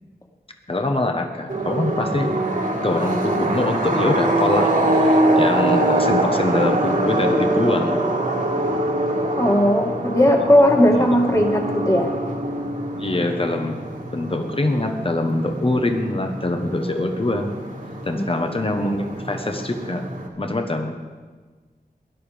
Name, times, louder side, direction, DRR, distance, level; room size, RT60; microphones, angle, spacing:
voice 1, 0.7-2.4 2.8-8.0 11.0-11.1 13.0-13.8 14.1-17.5 18.0-20.0 20.4-21.0, left 2 dB, 35° left, 5 dB, 1.3 m, -24 dB
sound 1, 1.5-20.3, right 1 dB, 55° right, 2.2 m, -24 dB
voice 2, 9.4-12.1 18.1-18.3, equal, 20° left, 2 dB, 2.1 m, -17 dB
18.0 x 11.0 x 5.2 m, 1.4 s
wide cardioid pair, 65°, 16 cm